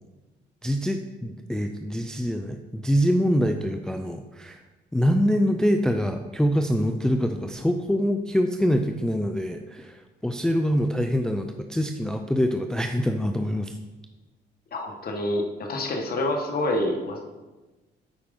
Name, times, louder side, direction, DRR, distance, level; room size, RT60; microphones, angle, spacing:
voice 1, 0.6-4.6 4.9-13.8, equal, 5° left, 6 dB, 0.4 m, -25 dB
voice 2, 14.7-17.2, left 1 dB, 50° left, 3 dB, 1.3 m, -27 dB
8.8 x 4.9 x 3.7 m, 1.2 s
cardioid pair, 90°, 20 cm